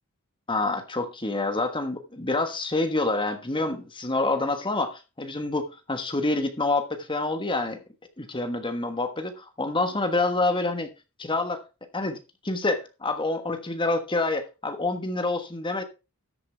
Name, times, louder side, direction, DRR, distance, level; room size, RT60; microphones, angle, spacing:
voice 1, 0.5-7.8 8.2-10.9 11.2-11.6 11.9-12.2 12.4-15.8, left 2 dB, 25° left, 1.3 m, -27 dB
13.0 x 8.4 x 3.4 m
head